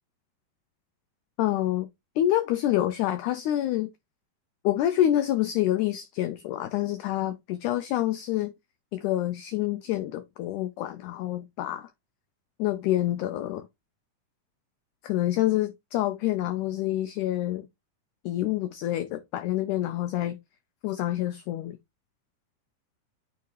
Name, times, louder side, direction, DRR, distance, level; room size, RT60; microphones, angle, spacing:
voice 1, 1.4-1.9 2.2-3.9 4.6-8.5 8.9-11.9 12.6-13.7 15.0-17.7 18.3-20.4 20.8-21.8, left 13 dB, 85° left, 1.7 m, -27 dB
9.2 x 3.5 x 3.1 m
omnidirectional pair, 4.1 m